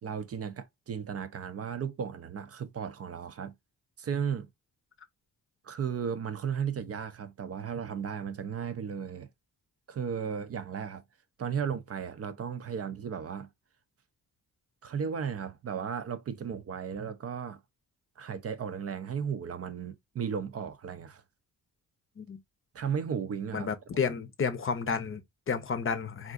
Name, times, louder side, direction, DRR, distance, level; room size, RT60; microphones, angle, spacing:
voice 1, 0.0-3.5 4.0-4.5 5.6-9.3 9.9-11.0 11.4-13.5 14.8-17.6 18.2-21.2 22.7-23.7, right 7 dB, 45° right, 0.5 m, -35 dB
voice 2, 23.5-26.3, left 6 dB, 40° left, 0.6 m, -31 dB
3.6 x 2.4 x 2.4 m
cardioid pair, 85°, 34 cm